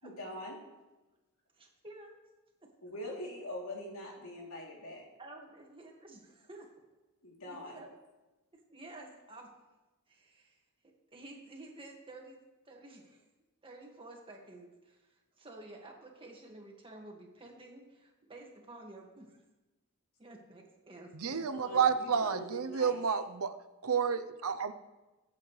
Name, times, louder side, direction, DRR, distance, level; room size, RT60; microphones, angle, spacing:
voice 1, 0.0-0.5 2.8-5.1 7.2-7.8 21.4-23.0, left 1 dB, 75° left, -2 dB, 3.2 m, -43 dB
voice 2, 1.5-2.2 2.6-2.7 5.2-6.7 7.5-7.9 8.5-9.5 10.1-10.6 11.1-13.2 13.6-19.4 20.2-21.4, right 2 dB, 25° right, 0 dB, 2.0 m, -51 dB
voice 3, 21.1-23.5 23.8-24.7, right 6 dB, 80° right, 10 dB, 0.7 m, -30 dB
22.5 x 8.4 x 3.3 m, 1.1 s
head